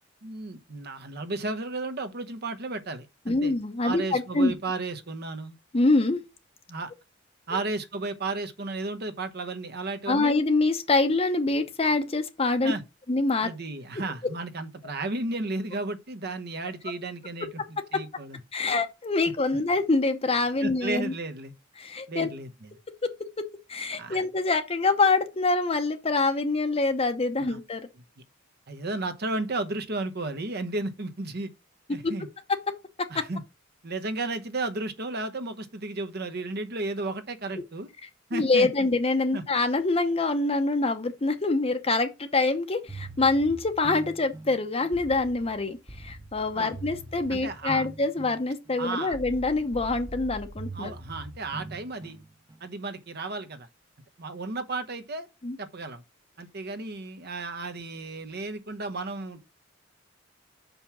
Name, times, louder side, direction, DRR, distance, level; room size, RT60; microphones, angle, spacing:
voice 1, 0.2-3.5 3.8-5.5 6.7-6.9 7.5-10.4 12.6-12.8 13.4-18.4 20.6-21.5 22.1-22.5 23.9-24.2 27.4-27.6 28.7-31.5 31.9-32.3 33.1-33.4 33.8-37.9 38.3-38.7 39.3-39.4 46.5-46.7 47.3-47.9 48.8-49.2 50.7-52.2 52.6-53.7 54.2-55.3 55.6-56.0 56.4-59.5, right 2 dB, 55° right, 1.0 m, -33 dB
voice 2, 3.3-4.5 5.7-6.2 10.1-12.7 13.1-13.5 14.2-14.3 17.9-18.0 18.5-21.1 21.8-22.3 22.9-27.9 31.9-32.1 33.0-33.2 38.3-50.9 55.4-55.6, left 3 dB, 30° left, 0.7 m, -25 dB
sound 1, 42.9-52.7, right 2 dB, 20° right, 0.9 m, -42 dB
5.8 x 5.3 x 6.0 m
head